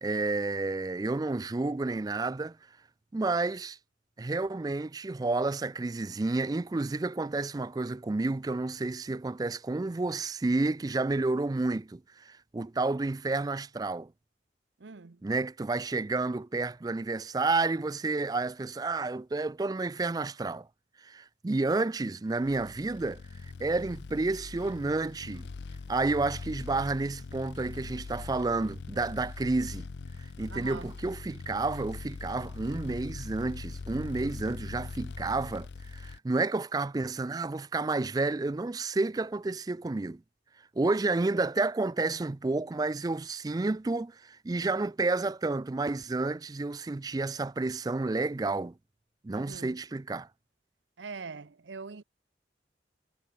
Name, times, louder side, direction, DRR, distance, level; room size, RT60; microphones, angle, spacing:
voice 1, 0.0-2.6 3.1-3.8 4.2-14.1 15.2-20.7 21.0-23.2 23.6-25.5 25.9-29.9 30.4-40.2 40.8-48.7 49.2-50.3, right 3 dB, 20° right, 0.3 m, -30 dB
voice 2, 14.8-15.2 30.5-31.0 49.3-49.8 51.0-52.0, right 4 dB, 80° right, 0.7 m, -43 dB
sound 1, 22.4-36.2, left 4 dB, 70° left, 0.5 m, -42 dB
head